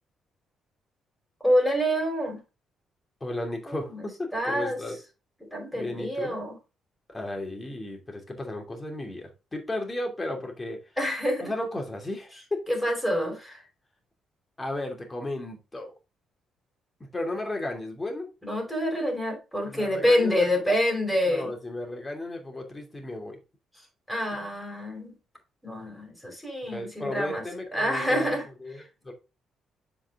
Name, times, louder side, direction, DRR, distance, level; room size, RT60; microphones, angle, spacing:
voice 1, 1.4-2.4 3.7-4.0 4.3-4.8 5.5-6.6 11.0-11.5 12.7-13.6 18.4-21.5 24.1-25.1 25.6-27.4 27.7-28.4, equal, 5° left, 1 dB, 4.7 m, -27 dB
voice 2, 3.2-5.0 5.7-6.4 7.1-10.9 11.4-12.6 14.6-15.9 17.0-18.3 19.6-20.5 21.2-23.4 24.3-24.4 26.6-28.3 28.6-29.1, left 1 dB, 20° left, 2 dB, 2.7 m, -34 dB
7.4 x 4.9 x 3.7 m, 0.29 s
cardioid pair, 90°, 0 cm